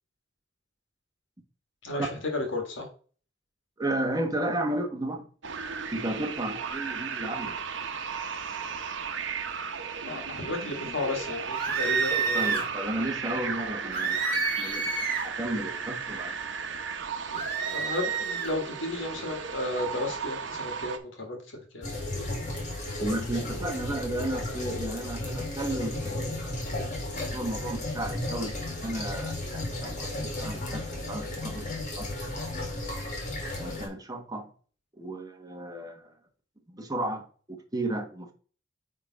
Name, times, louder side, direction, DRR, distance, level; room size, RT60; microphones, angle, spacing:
voice 1, 1.8-2.9 10.0-12.6 17.3-22.5, left 2 dB, 70° left, 1.9 m, -34 dB
voice 2, 3.8-5.2 5.9-7.6 12.1-16.4 23.0-31.7 31.9-32.1 33.5-34.5 35.0-36.1 36.7-38.3, right 1 dB, 20° right, 1.2 m, -34 dB
sound 1, 5.4-21.0, right 5 dB, 70° right, 1.0 m, -35 dB
sound 2, 11.5-12.7 13.9-15.3 17.3-18.5, right 5 dB, 45° right, 2.0 m, -29 dB
sound 3, 21.8-33.9, left 1 dB, 40° left, 2.3 m, -34 dB
9.0 x 3.7 x 4.1 m
head